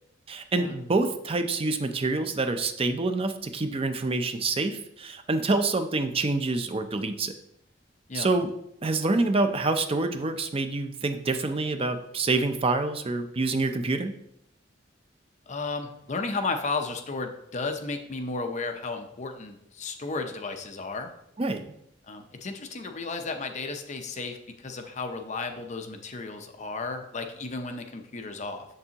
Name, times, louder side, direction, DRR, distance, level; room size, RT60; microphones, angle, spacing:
voice 1, 0.3-7.3 8.1-8.5 8.8-14.1 21.4-21.7, right 3 dB, 30° right, 8 dB, 0.5 m, -27 dB
voice 2, 15.5-21.1 22.1-28.7, left 3 dB, 40° left, 5 dB, 0.7 m, -34 dB
7.1 x 6.7 x 2.9 m, 0.78 s
head